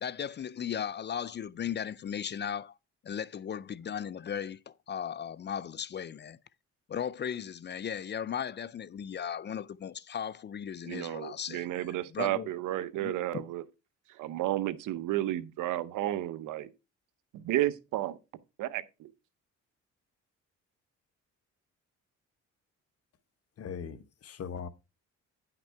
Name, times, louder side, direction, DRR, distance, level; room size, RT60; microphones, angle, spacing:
voice 1, 0.0-2.8 3.0-6.4 6.9-12.5 13.0-13.5, left 8 dB, 35° left, 0.4 m, -37 dB
voice 2, 10.9-13.6 14.2-16.7 17.3-18.2 18.6-19.1, right 14 dB, 85° right, 0.8 m, -32 dB
voice 3, 23.6-24.7, left 7 dB, 50° left, 1.1 m, -40 dB
10.0 x 5.9 x 4.5 m
cardioid pair, 90°, 30 cm